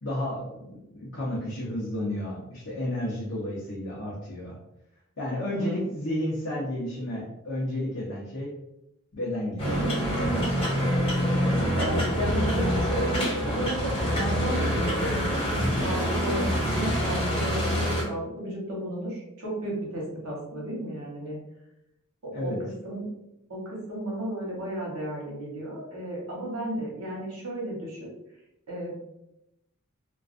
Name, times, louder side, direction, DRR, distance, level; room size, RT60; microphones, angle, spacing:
voice 1, 0.0-4.6 5.2-8.6 9.1-10.5 22.3-22.6, left 1 dB, 60° left, -7 dB, 0.7 m, -32 dB
voice 2, 5.5-5.8 11.7-15.5 15.8-21.4 22.2-22.5 22.8-23.1 23.5-28.1 28.7-29.0, right 1 dB, 85° right, -4 dB, 1.0 m, -33 dB
sound 1, 9.6-18.0, equal, 25° left, 1.0 m, -26 dB
2.4 x 2.3 x 2.4 m, 0.85 s
head